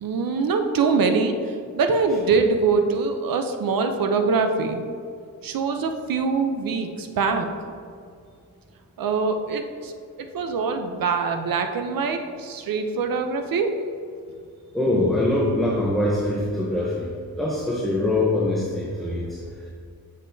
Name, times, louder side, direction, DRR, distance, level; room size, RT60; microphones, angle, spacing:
voice 1, 0.0-1.3 1.8-4.9 5.4-7.5 9.0-9.9 10.3-13.7, right 4 dB, 70° right, 6 dB, 0.7 m, -23 dB
voice 2, 14.7-17.1 17.4-19.4, left 1 dB, ahead, -4 dB, 0.8 m, -23 dB
7.5 x 6.3 x 2.7 m, 2.3 s
wide cardioid pair, 110°, 35 cm